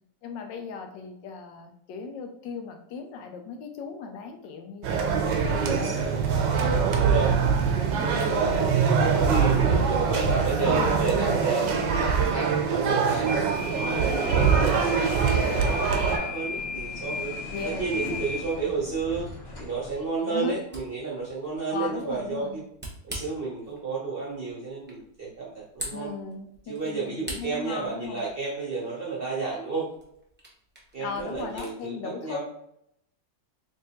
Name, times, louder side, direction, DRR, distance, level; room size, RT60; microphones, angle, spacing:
voice 1, 0.2-6.1 6.4-9.2 9.6-11.9 17.5-18.0 20.3-20.5 21.7-22.6 25.9-28.2 31.0-32.4, left 5 dB, 85° left, 5 dB, 1.3 m, -38 dB
sound 1, 4.8-16.2, right 6 dB, 90° right, 1.3 m, -23 dB
voice 2, 5.5-6.2 7.0-7.3 9.3-15.0 15.5-17.3 17.7-19.3 19.6-22.6 23.0-26.1 26.7-29.8 30.9-32.4, right 4 dB, 50° right, -5 dB, 0.7 m, -31 dB
sound 2, 11.4-20.0, left 3 dB, 50° left, 0.8 m, -36 dB
Camera, 20.4-31.8, right 1 dB, 15° right, 0.3 m, -45 dB
3.5 x 3.2 x 2.8 m, 0.74 s
omnidirectional pair, 1.9 m